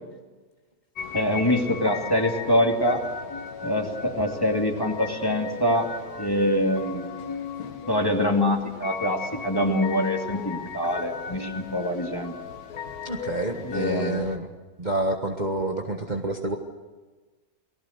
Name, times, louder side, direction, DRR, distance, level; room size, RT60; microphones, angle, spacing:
sound 1, 1.0-14.4, left 6 dB, 80° left, 1.8 m, -36 dB
voice 1, 1.1-3.0 3.6-5.9 6.2-7.2 7.9-12.4 13.6-14.4, left 1 dB, 15° left, 2 dB, 2.5 m, -24 dB
voice 2, 13.0-14.5 14.8-16.6, right 2 dB, 30° right, 2 dB, 1.5 m, -28 dB
29.0 x 19.5 x 6.6 m, 1.3 s
omnidirectional pair, 1.6 m